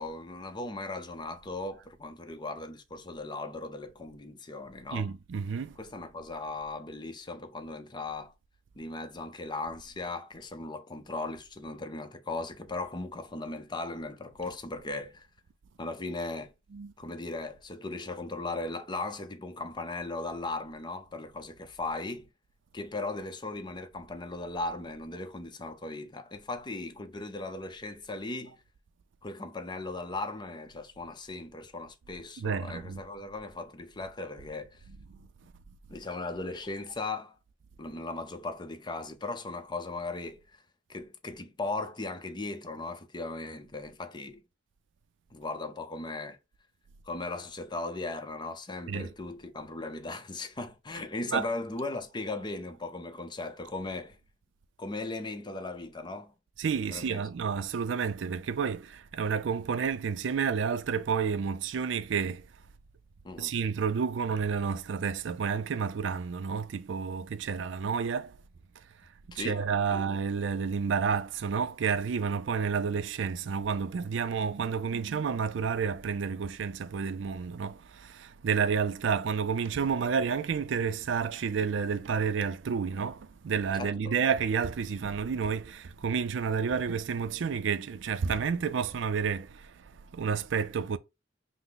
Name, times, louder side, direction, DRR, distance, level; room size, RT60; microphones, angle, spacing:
voice 1, 0.0-5.1 5.8-8.3 8.8-15.3 15.8-16.5 17.0-22.3 22.7-28.6 29.2-34.8 35.9-37.4 37.8-40.6 40.9-44.4 45.3-46.4 47.1-54.2 54.8-56.3 56.9-57.2 63.2-63.5 69.3-69.6 69.9-70.0 83.7-84.1, left 2 dB, 25° left, 0.6 m, -37 dB
voice 2, 4.9-5.8 16.7-16.9 32.4-33.0 34.9-35.0 48.9-49.1 51.3-51.5 56.6-62.5 63.4-68.4 69.3-91.0, right 6 dB, 70° right, 0.4 m, -30 dB
5.8 x 2.0 x 3.8 m
head